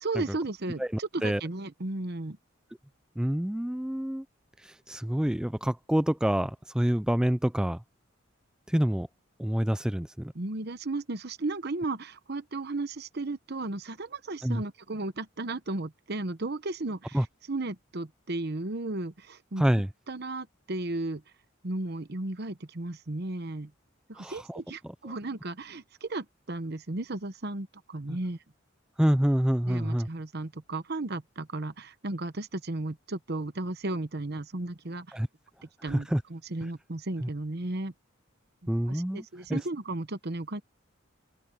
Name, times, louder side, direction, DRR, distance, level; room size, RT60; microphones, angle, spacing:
voice 1, 0.0-2.4 10.3-19.6 20.1-21.2 21.6-23.7 24.1-28.4 29.7-35.2 35.8-37.9 38.6-40.6, right 2 dB, 55° right, 1.0 m, -35 dB
voice 2, 3.2-4.2 4.6-7.8 8.7-9.1 9.4-10.3 14.4-14.6 17.1-17.2 19.6-19.9 24.2-24.6 29.0-30.1 35.1-35.3 35.8-36.2 37.2-37.3 38.7-39.2 39.5-39.6, equal, 5° right, 0.3 m, -27 dB
open air
head